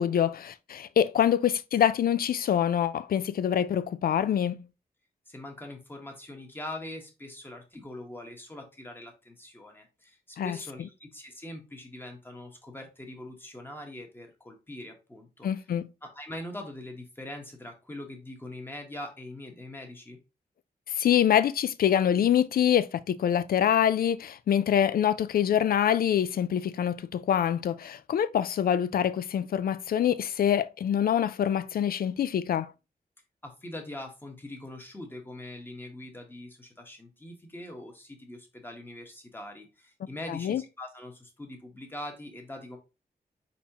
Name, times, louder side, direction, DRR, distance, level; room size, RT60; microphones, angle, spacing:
voice 1, 0.0-4.6 10.4-10.6 15.4-15.9 21.0-32.7 40.3-40.6, left 9 dB, 70° left, 0.4 m, -25 dB
voice 2, 5.3-15.5 16.0-20.2 33.4-42.8, left 1 dB, 15° left, 1.2 m, -42 dB
4.2 x 4.2 x 2.9 m
wide cardioid pair, 125°, 16 cm